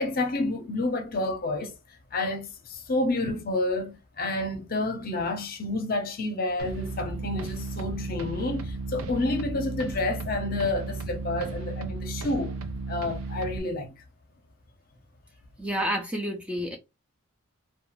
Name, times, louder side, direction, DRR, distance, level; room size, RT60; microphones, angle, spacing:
voice 1, 0.0-1.7 2.1-12.6 12.9-13.9, left 2 dB, 45° left, 0.6 m, -29 dB
sound 1, 6.6-13.6, right 3 dB, 90° right, 0.5 m, -34 dB
voice 2, 15.6-16.8, equal, 5° right, 0.3 m, -29 dB
2.4 x 2.2 x 2.9 m
head